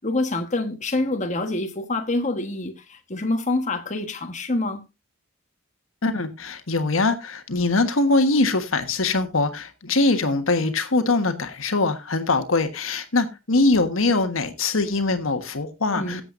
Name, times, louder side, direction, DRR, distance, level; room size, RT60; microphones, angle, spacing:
voice 1, 0.0-4.9 15.9-16.2, left 2 dB, 35° left, 1.3 m, -26 dB
voice 2, 6.0-16.2, left 3 dB, 80° left, 1.4 m, -22 dB
17.0 x 7.8 x 2.6 m
head